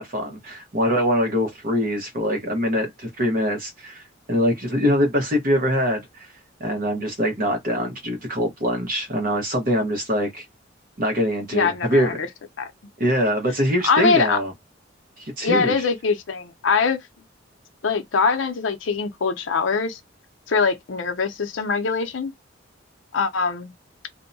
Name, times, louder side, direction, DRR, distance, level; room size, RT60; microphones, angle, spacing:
voice 1, 0.0-4.0 4.3-6.3 6.6-10.4 11.0-12.2 13.0-14.5 15.2-15.7, equal, 50° right, 1.0 m, -23 dB
voice 2, 11.5-12.3 12.6-12.7 13.8-14.4 15.4-17.0 17.8-20.0 20.5-22.3 23.1-23.7, left 5 dB, 80° left, 0.6 m, -22 dB
2.6 x 2.1 x 2.6 m
head